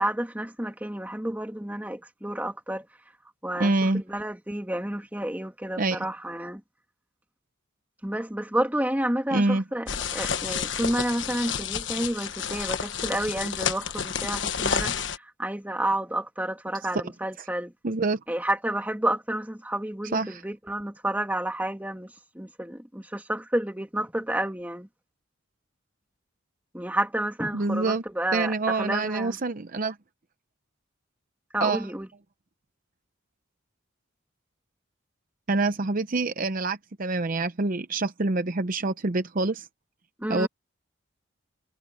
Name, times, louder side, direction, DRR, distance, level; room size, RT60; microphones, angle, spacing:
voice 1, 0.0-2.8 3.4-6.6 8.0-14.9 15.4-17.7 18.3-22.1 22.4-24.9 26.7-29.4 31.5-32.1 40.2-40.5, right 1 dB, 10° right, 1.9 m, -30 dB
voice 2, 3.6-4.0 5.8-6.1 9.3-9.6 16.9-17.0 17.4-17.5 17.8-18.2 20.1-20.4 27.5-28.0 28.3-30.0 31.6-31.9 35.5-39.7 40.3-40.5, right 3 dB, 45° right, 0.7 m, -26 dB
sound 1, 9.9-15.2, left 7 dB, 65° left, 1.3 m, -30 dB
head